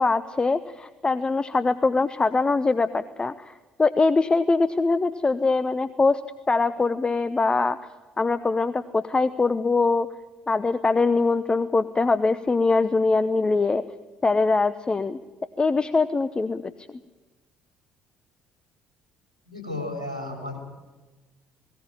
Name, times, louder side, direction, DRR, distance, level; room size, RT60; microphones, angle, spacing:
voice 1, 0.0-3.5 3.8-6.2 6.5-7.8 8.2-10.1 10.5-13.8 14.2-15.2 15.6-16.6, left 3 dB, 25° left, 13 dB, 0.9 m, -22 dB
voice 2, 19.5-20.6, left 2 dB, 90° left, 4 dB, 3.7 m, -33 dB
19.0 x 18.5 x 8.8 m, 1.2 s
figure-of-eight pair, 50°, 4 cm